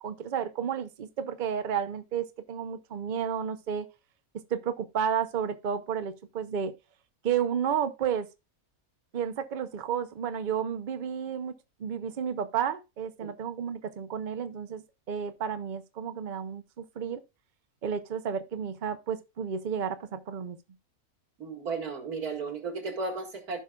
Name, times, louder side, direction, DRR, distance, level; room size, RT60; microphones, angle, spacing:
voice 1, 0.0-3.9 4.5-6.7 7.2-8.3 9.1-11.5 11.8-17.2 17.8-20.6, right 8 dB, 45° right, 0.7 m, -32 dB
voice 2, 21.4-23.6, right 4 dB, 85° right, 2.4 m, -34 dB
15.0 x 5.6 x 2.3 m
omnidirectional pair, 1.5 m